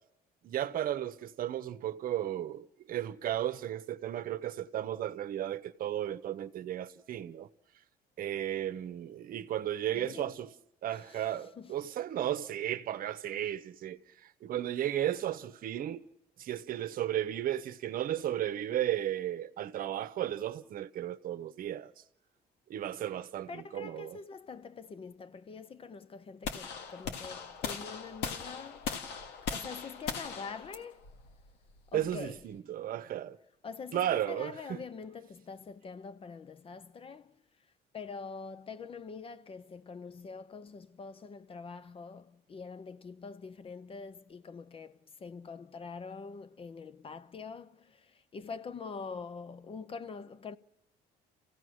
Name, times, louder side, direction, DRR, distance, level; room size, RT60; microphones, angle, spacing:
voice 1, 0.4-7.5 8.2-10.5 10.8-14.0 14.4-16.0 16.4-21.9 22.7-24.2 31.9-33.4 33.9-34.8, right 11 dB, 55° right, 0.9 m, -34 dB
voice 2, 9.9-10.3 10.9-11.3 11.6-11.7 23.5-28.9 29.5-31.1 31.9-32.4 33.6-37.4 37.9-50.6, left 5 dB, 35° left, 0.7 m, -45 dB
sound 1, 26.4-32.5, left 6 dB, 85° left, 1.7 m, -39 dB
29.0 x 16.0 x 6.3 m
cardioid pair, 110°, 17 cm